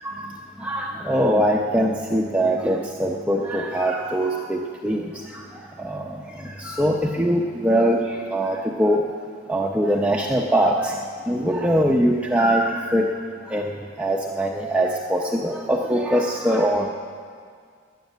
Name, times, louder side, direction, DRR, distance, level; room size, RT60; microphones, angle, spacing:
voice 1, 0.0-9.0 9.5-11.0 11.3-13.1 13.5-16.9, equal, 5° right, -1 dB, 0.7 m, -22 dB
13.0 x 11.0 x 9.2 m, 2.1 s
head